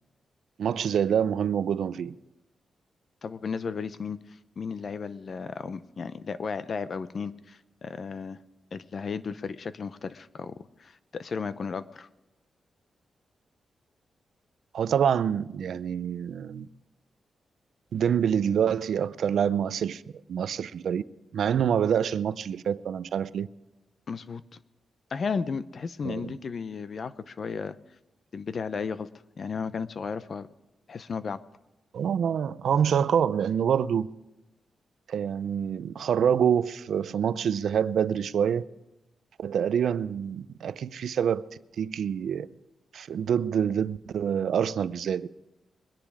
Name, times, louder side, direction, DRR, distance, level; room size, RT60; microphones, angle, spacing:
voice 1, 0.6-2.1 14.7-16.7 17.9-20.0 20.3-21.0 21.3-23.5 26.0-26.3 31.9-34.1 35.1-38.6 39.4-41.4 41.8-42.5 42.9-45.3, right 8 dB, 80° right, 0.5 m, -26 dB
voice 2, 3.2-4.2 4.6-8.4 8.7-12.1 24.1-24.4 25.1-27.8 28.3-29.1 29.4-30.5 30.9-31.4, left 5 dB, 50° left, 0.7 m, -34 dB
22.0 x 10.5 x 4.9 m
wide cardioid pair, 115°, 0 cm